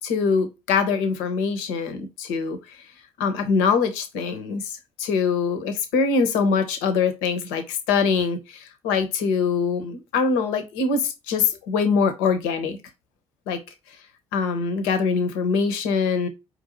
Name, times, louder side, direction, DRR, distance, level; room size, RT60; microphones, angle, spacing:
voice 1, 0.0-2.8 3.2-12.8 13.5-13.6 14.3-16.3, left 5 dB, 70° left, 0.7 m, -23 dB
4.7 x 2.6 x 3.0 m
figure-of-eight pair, 45°, 15 cm